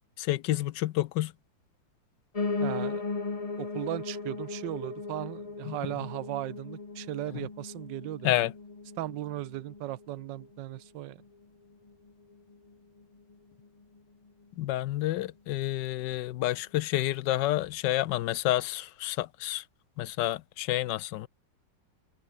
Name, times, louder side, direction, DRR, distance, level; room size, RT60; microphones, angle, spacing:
voice 1, 0.2-1.3 5.7-5.8 8.2-8.5 14.6-19.6 20.0-21.3, left 15 dB, 75° left, 1.3 m, -29 dB
Piano, 2.3-11.4 11.8-13.0 13.3-13.4 13.6-13.7 14.0-14.1 14.6-14.7, left 3 dB, 20° left, 1.2 m, -37 dB
voice 2, 2.6-3.2 3.6-8.4 9.0-11.2, right 15 dB, 80° right, 1.3 m, -37 dB
omnidirectional pair, 2.0 m